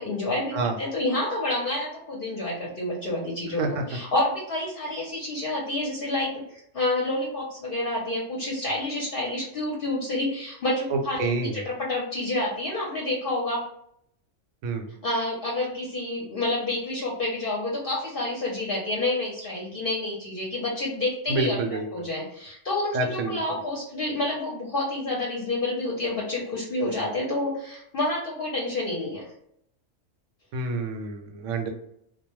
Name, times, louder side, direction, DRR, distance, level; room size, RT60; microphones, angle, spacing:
voice 1, 0.0-3.6 3.9-13.6 15.0-21.6 21.9-29.2, left 2 dB, 55° left, -4 dB, 0.7 m, -29 dB
voice 2, 10.9-11.7 14.6-14.9 21.3-22.1 22.9-23.6 30.5-31.7, right 3 dB, 80° right, 4 dB, 0.9 m, -28 dB
2.2 x 2.1 x 2.9 m, 0.73 s
omnidirectional pair, 1.3 m